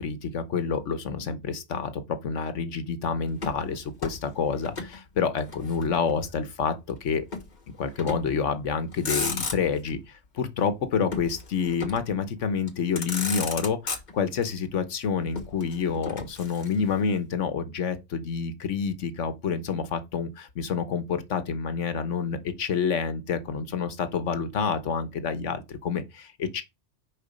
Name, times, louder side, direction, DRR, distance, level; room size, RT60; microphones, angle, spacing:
voice 1, 0.0-7.2 7.7-10.0 10.3-26.6, left 6 dB, 85° left, 1.3 m, -28 dB
Motor vehicle (road), 3.4-5.0 5.3-6.3 7.3-7.5 8.0-8.4 8.9-9.9 11.1-12.2 12.7-12.8 13.0-14.5 15.3-17.0, left 4 dB, 40° left, 1.2 m, -34 dB
6.8 x 5.0 x 5.1 m
omnidirectional pair, 1.2 m